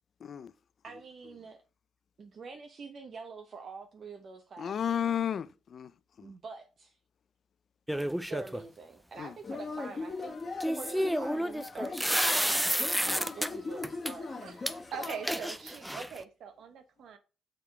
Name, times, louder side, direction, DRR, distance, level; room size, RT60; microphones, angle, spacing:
voice 1, 0.2-0.5 4.6-5.9 6.2-6.3 9.2-9.3 13.1-13.2, left 9 dB, 55° left, 0.4 m, -33 dB
voice 2, 0.8-1.6 2.2-5.1 6.2-7.0 8.3-10.4 10.7-12.7 13.0-14.5 15.3-15.4, right 4 dB, 50° right, 0.8 m, -46 dB
sound 1, 7.9-8.6 10.6-13.5 13.8-14.1 14.7-14.8 15.0-16.2, equal, 5° right, 0.5 m, -30 dB
Yell / Cheering, 9.4-15.6, left 3 dB, 30° left, 1.4 m, -40 dB
voice 3, 14.4-17.2, right 7 dB, 70° right, 1.1 m, -42 dB
6.7 x 3.6 x 4.5 m
cardioid pair, 90°, 0 cm